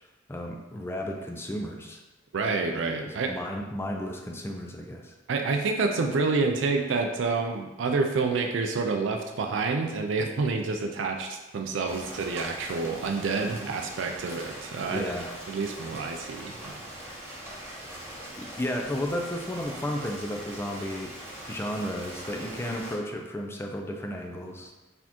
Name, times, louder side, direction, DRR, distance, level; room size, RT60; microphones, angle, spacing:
voice 1, 0.3-2.0 3.0-5.1 14.9-15.4 18.4-21.1 21.5-24.7, left 1 dB, 15° left, 2 dB, 0.4 m, -33 dB
voice 2, 2.3-3.4 5.3-15.1 15.5-16.8, right 4 dB, 80° right, 3 dB, 0.4 m, -28 dB
Rain, 11.9-23.0, right 1 dB, 15° right, 1.1 m, -42 dB
4.2 x 3.5 x 2.9 m, 1.1 s
head